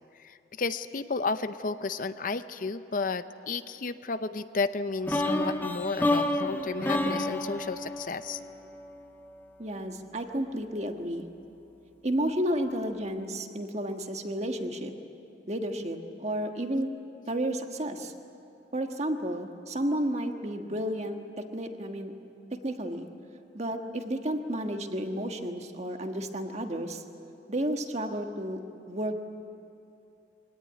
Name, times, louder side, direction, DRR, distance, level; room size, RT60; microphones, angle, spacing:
voice 1, 0.2-8.4, left 4 dB, 50° left, 12 dB, 0.6 m, -32 dB
sound 1, 5.1-9.0, left 1 dB, 10° left, 1.3 m, -29 dB
voice 2, 9.6-11.3 12.0-14.9 15.5-16.9 17.3-18.1 18.7-21.2 21.5-22.1 22.5-23.1 23.5-27.0 27.5-28.6 28.9-29.1, right 1 dB, 40° right, 5 dB, 1.5 m, -32 dB
23.5 x 18.0 x 9.8 m, 2.8 s
head